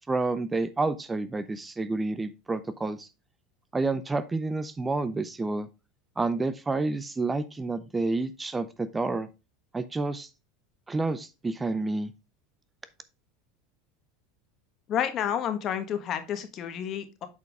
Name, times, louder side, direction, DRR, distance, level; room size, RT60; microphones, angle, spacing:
voice 1, 0.1-3.1 3.7-5.7 6.2-9.3 9.7-10.3 10.9-12.1, right 3 dB, 15° right, 14 dB, 0.5 m, -29 dB
voice 2, 14.9-17.3, left 9 dB, 45° left, 9 dB, 1.3 m, -30 dB
8.4 x 4.6 x 3.4 m, 0.27 s
supercardioid pair, 105°, 0 cm